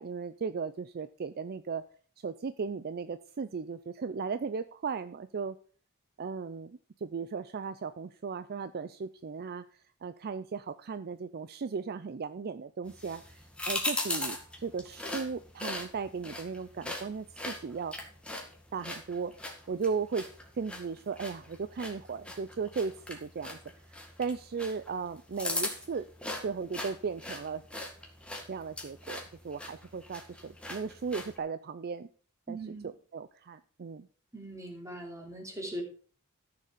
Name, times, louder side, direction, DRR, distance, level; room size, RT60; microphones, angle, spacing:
voice 1, 0.0-1.8 2.2-5.6 6.2-18.1 18.7-20.3 20.5-23.6 24.2-26.1 26.4-27.6 28.5-32.1 32.5-34.1, right 5 dB, 45° right, 13 dB, 0.4 m, -36 dB
sound 1, 12.9-31.4, left 2 dB, 5° left, 1.9 m, -40 dB
voice 2, 32.5-32.9 34.3-35.8, right 1 dB, 15° right, 1 dB, 3.1 m, -40 dB
13.5 x 6.8 x 5.0 m, 0.42 s
head